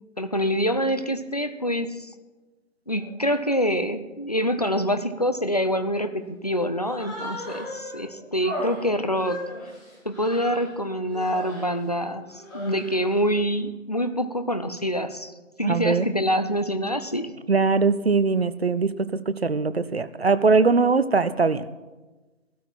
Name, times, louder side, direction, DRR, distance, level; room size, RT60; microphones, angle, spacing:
voice 1, 0.2-2.1 2.9-9.4 10.0-15.3 15.6-17.3, equal, 30° left, 9 dB, 0.5 m, -26 dB
Human voice, 6.8-8.0 8.4-10.7 11.1-11.7 12.3-13.1, left 1 dB, ahead, 2.6 m, -36 dB
voice 2, 15.6-16.1 17.5-21.7, right 4 dB, 50° right, 14 dB, 0.6 m, -21 dB
15.0 x 13.0 x 4.6 m, 1.2 s
figure-of-eight pair, 155°, 39 cm